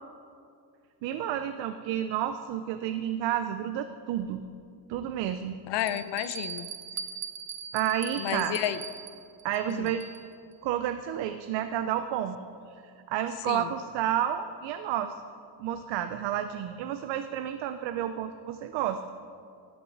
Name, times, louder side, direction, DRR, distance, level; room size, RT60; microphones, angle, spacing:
voice 1, 1.0-4.4 4.9-5.6 7.7-8.6 9.4-10.0 10.6-12.4 12.7-12.8 13.1-15.2 15.6-19.0, right 10 dB, 85° right, 9 dB, 0.6 m, -30 dB
Bell, 4.2-4.3 4.9-5.0 5.8-10.4, right 7 dB, 40° right, 0.7 m, -40 dB
voice 2, 5.7-6.7 8.2-8.8 9.7-9.9 13.5-13.7, left 12 dB, 70° left, 13 dB, 0.7 m, -31 dB
12.5 x 8.1 x 4.7 m, 2.3 s
cardioid pair, 100°, 43 cm